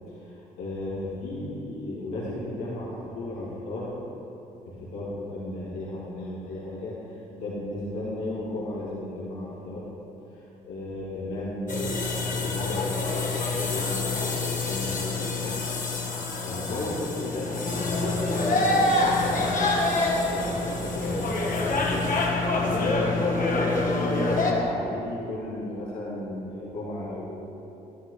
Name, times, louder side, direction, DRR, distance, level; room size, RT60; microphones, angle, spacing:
voice 1, 0.1-3.9 4.6-9.8 10.3-15.5 16.0-27.3, left 1 dB, 85° left, -8 dB, 2.3 m, -35 dB
sound 1, 11.7-24.5, left 2 dB, 45° left, 1.8 m, -26 dB
12.0 x 11.0 x 3.3 m, 3.0 s
hypercardioid pair, 50°, 19 cm